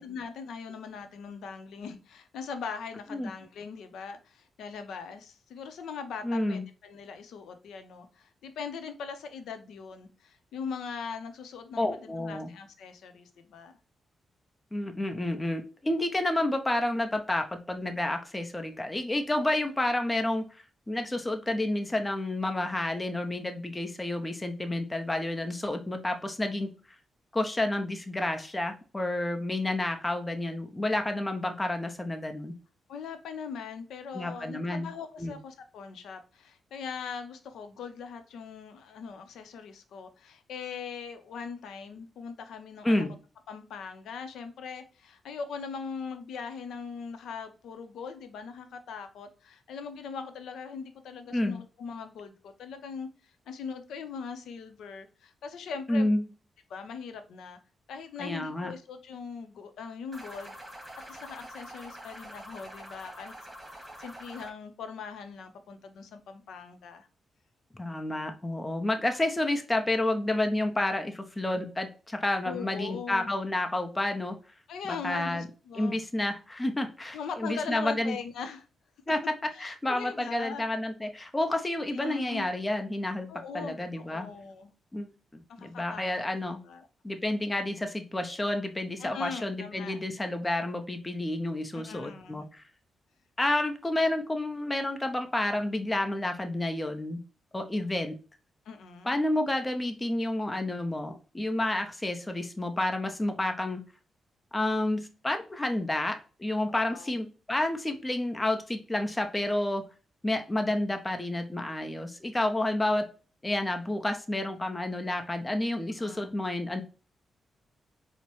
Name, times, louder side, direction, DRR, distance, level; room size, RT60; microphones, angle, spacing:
voice 1, 0.0-13.8 32.9-43.2 43.5-56.1 56.7-57.6 57.9-60.5 61.1-63.3 63.7-67.1 72.4-73.4 74.7-76.0 77.1-78.6 79.5-80.6 81.7-82.5 83.3-84.7 85.6-86.3 86.6-86.9 89.0-90.0 91.7-92.4 98.7-99.1 106.7-107.2 116.0-116.3, left 5 dB, 80° left, 8 dB, 0.6 m, -41 dB
voice 2, 6.2-6.6 11.8-12.5 14.7-26.7 27.3-32.5 34.1-34.9 35.2-35.4 42.8-43.1 51.3-51.6 55.9-56.2 58.2-58.7 67.7-74.4 74.9-75.4 75.7-78.2 79.1-79.2 79.6-83.3 83.5-84.3 84.9-85.1 85.6-86.6 87.0-92.6 93.4-97.2 97.5-98.1 99.0-103.8 104.5-109.8 110.2-113.1 113.4-116.8, left 1 dB, 20° left, 5 dB, 0.7 m, -30 dB
sound 1, 60.1-64.5, right 1 dB, 15° right, 1.7 m, -45 dB
4.3 x 2.1 x 3.0 m, 0.35 s
supercardioid pair, 55°, 0 cm